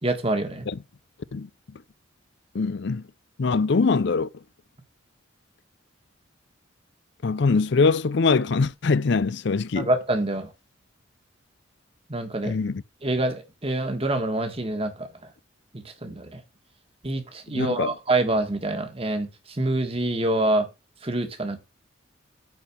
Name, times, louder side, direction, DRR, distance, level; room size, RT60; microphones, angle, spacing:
voice 1, 0.0-0.7 9.8-10.5 12.1-12.6 13.0-15.1 15.7-16.4 17.0-20.7 21.0-21.6, right 2 dB, 25° right, 1.5 m, -26 dB
voice 2, 2.5-3.0 3.4-4.3 7.2-9.9 12.4-12.8 17.5-17.9, left 4 dB, 55° left, 0.5 m, -23 dB
9.4 x 4.5 x 6.9 m
head